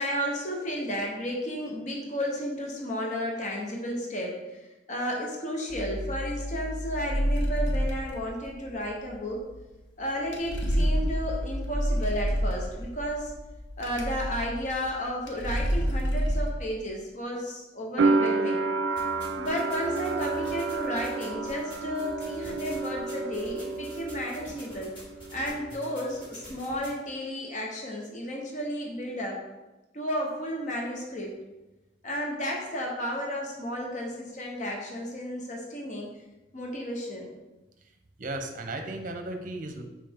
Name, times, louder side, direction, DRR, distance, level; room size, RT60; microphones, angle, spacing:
voice 1, 0.0-4.6 4.9-9.5 10.0-13.3 13.8-18.6 19.4-25.0 25.3-29.4 29.9-31.4 32.0-36.1 36.5-37.3, equal, 40° left, -1 dB, 1.0 m, -33 dB
sound 1, 5.7-16.5, equal, 85° left, 0.9 m, -29 dB
sound 2, 18.0-24.8 25.0-25.9, right 3 dB, 80° right, 0.4 m, -30 dB
sound 3, 18.9-26.9, equal, 25° left, 2.1 m, -47 dB
voice 2, 38.2-39.8, right 2 dB, 45° right, 5 dB, 0.7 m, -35 dB
5.7 x 4.8 x 3.6 m, 1.1 s
head